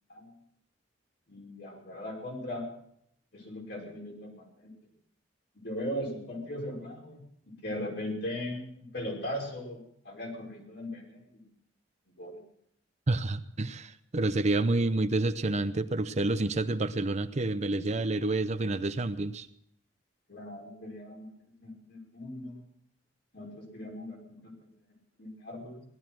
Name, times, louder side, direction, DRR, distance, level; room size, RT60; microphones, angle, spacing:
voice 1, 1.3-2.7 3.3-4.7 5.5-9.8 10.0-11.5 12.2-12.4 20.3-22.6 23.3-24.5 25.2-25.8, left 1 dB, 60° left, -1 dB, 5.5 m, -39 dB
voice 2, 13.1-19.5, right 2 dB, 40° right, 11 dB, 0.7 m, -29 dB
18.0 x 12.5 x 6.1 m, 0.70 s
head